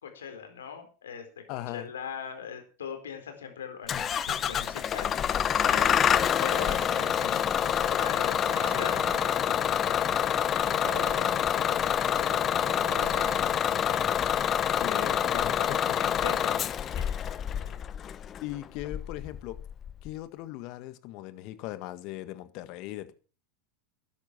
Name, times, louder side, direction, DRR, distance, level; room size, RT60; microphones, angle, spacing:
voice 1, 0.0-9.0 9.3-16.6 16.9-17.2 17.5-17.8, left 7 dB, 85° left, 4.2 m, -42 dB
voice 2, 1.5-1.9 14.8-15.9 18.4-19.6 20.0-23.1, left 15 dB, 55° left, 1.7 m, -38 dB
Bus / Engine starting, 3.9-20.1, left 9 dB, 30° left, 0.9 m, -27 dB
Human voice / Animal, 6.4-7.3 8.4-9.4 10.6-11.5 12.6-13.5, right 11 dB, 65° right, 2.3 m, -42 dB
12.5 x 10.5 x 6.0 m
hypercardioid pair, 100°, 0 cm